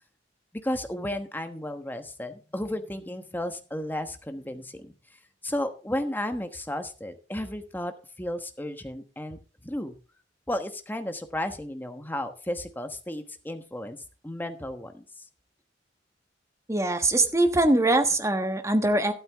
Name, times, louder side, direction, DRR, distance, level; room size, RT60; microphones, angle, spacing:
voice 1, 0.6-4.9 5.4-9.9 10.5-14.0 14.2-15.0, left 1 dB, 10° left, 7 dB, 1.2 m, -33 dB
voice 2, 16.7-19.1, right 2 dB, 15° right, 7 dB, 1.2 m, -22 dB
12.5 x 11.5 x 3.5 m, 0.35 s
head